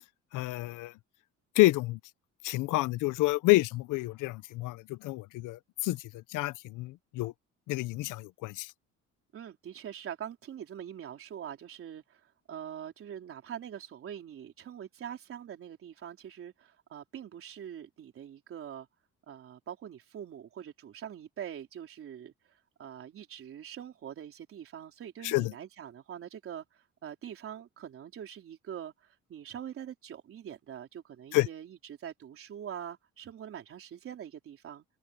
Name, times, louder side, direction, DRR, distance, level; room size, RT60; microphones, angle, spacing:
voice 1, 0.3-0.9 1.6-2.0 2.4-6.0 6.3-7.3 7.7-8.7 25.2-25.5 31.3-31.5, left 20 dB, 90° left, 0.7 m, -28 dB
voice 2, 9.3-18.9 19.3-22.3 22.8-34.9, right 9 dB, 45° right, 3.9 m, -44 dB
cardioid pair, 165°, 30 cm